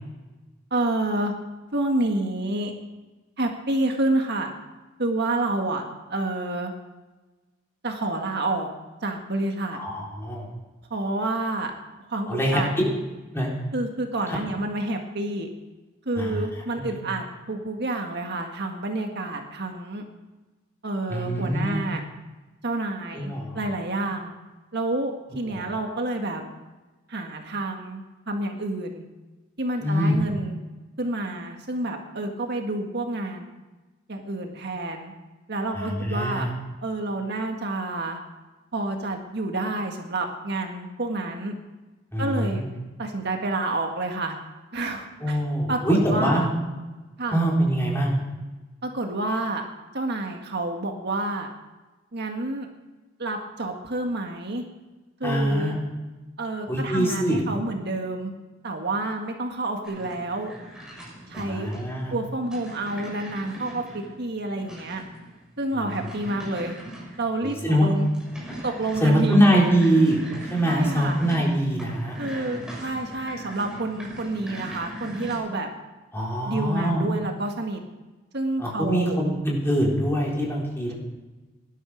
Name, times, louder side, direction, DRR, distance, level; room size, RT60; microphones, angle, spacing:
voice 1, 0.7-1.3 1.7-2.7 3.4-4.5 5.0-5.8 6.1-6.7 7.8-8.7 9.0-9.8 10.9-11.7 12.1-12.7 13.7-15.5 16.1-20.1 20.8-22.0 22.6-24.3 24.7-26.4 27.1-28.0 28.3-29.0 29.6-30.6 31.0-33.5 34.1-35.1 35.5-36.5 36.8-38.2 38.7-41.5 42.2-42.6 43.0-44.4 44.7-45.4 45.7-46.5 47.2-47.4 48.8-49.6 49.9-51.5 52.1-52.7 53.2-54.6 55.2-55.8 56.4-58.3 58.6-60.5 61.3-61.7 62.1-65.0 65.6-66.7 67.2-68.1 68.6-69.5 70.7-71.2 72.2-75.7 76.4-77.8 78.3-79.2, right 2 dB, 55° right, 3 dB, 1.7 m, -28 dB
voice 2, 9.7-10.5 12.3-12.9 13.3-13.5 14.3-14.4 16.2-16.4 16.8-17.0 21.1-21.8 23.1-23.6 25.5-25.6 29.8-30.2 35.7-36.5 42.1-42.7 45.2-46.4 47.3-48.2 55.2-55.8 56.7-57.4 61.4-62.1 66.0-66.1 67.4-67.9 69.0-70.2 70.5-72.6 76.1-77.0 78.6-80.9, equal, 10° left, -3 dB, 4.1 m, -23 dB
sound 1, 59.8-75.4, right 1 dB, 5° right, 6.5 m, -40 dB
18.5 x 12.0 x 5.1 m, 1.2 s
head